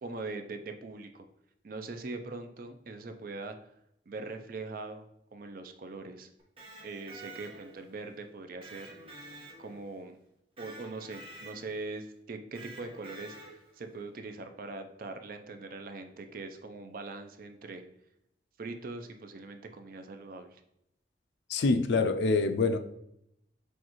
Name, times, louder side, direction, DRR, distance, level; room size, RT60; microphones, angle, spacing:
voice 1, 0.0-1.3 1.6-3.6 4.1-6.3 6.8-8.9 9.6-10.2 10.6-17.8 18.6-20.6, right 3 dB, 50° right, 7 dB, 0.4 m, -42 dB
Electric guitar, 6.4-7.9 8.6-10.0 10.6-11.8 12.5-13.8, right 2 dB, 35° right, 1.1 m, -49 dB
voice 2, 21.5-22.8, left 3 dB, 75° left, 9 dB, 0.4 m, -25 dB
6.2 x 2.4 x 3.0 m, 0.78 s
head